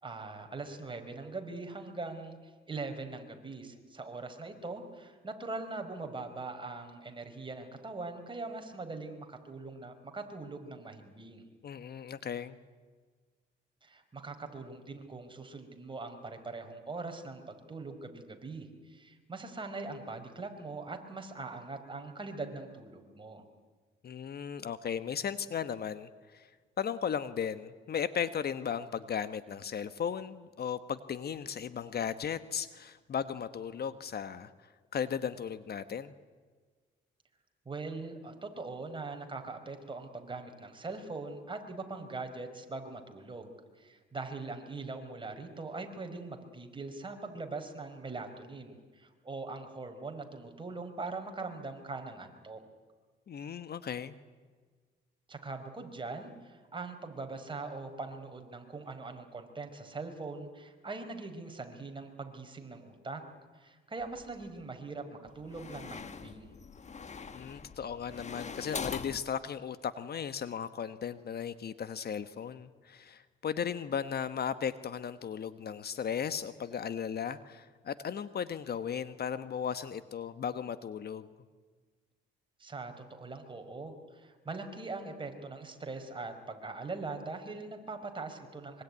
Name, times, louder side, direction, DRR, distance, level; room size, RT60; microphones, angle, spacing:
voice 1, 0.0-11.5 13.8-23.4 37.6-52.6 55.3-63.2 63.5-66.5 82.6-88.8, right 3 dB, 25° right, 5 dB, 4.6 m, -42 dB
voice 2, 11.6-12.6 24.0-26.5 26.8-34.5 34.9-36.1 53.3-54.1 67.3-81.3, left 7 dB, 55° left, 12 dB, 1.2 m, -36 dB
sound 1, 64.0-64.6 65.3-69.2, left 5 dB, 35° left, 1.4 m, -43 dB
24.5 x 24.0 x 9.7 m, 1.5 s
cardioid pair, 90°, 20 cm